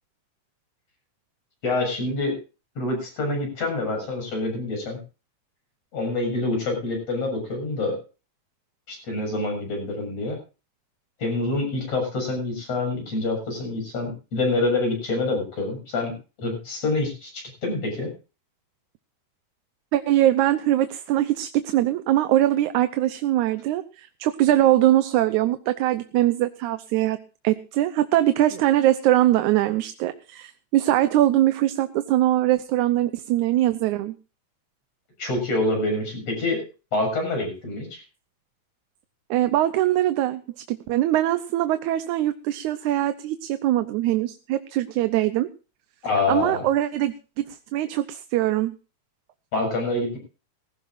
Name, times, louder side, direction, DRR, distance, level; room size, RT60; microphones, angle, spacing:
voice 1, 1.6-2.4 2.8-5.0 5.9-8.0 8.9-10.4 11.2-16.1 16.4-18.1 35.2-36.6 36.9-38.0 46.0-46.6 49.5-50.2, left 2 dB, 55° left, 2 dB, 8.5 m, -26 dB
voice 2, 19.9-27.2 27.4-34.1 39.3-40.4 40.7-45.5 46.3-47.4 47.7-48.7, right 14 dB, 80° right, 11 dB, 2.2 m, -22 dB
20.0 x 16.0 x 2.6 m, 0.33 s
omnidirectional pair, 3.4 m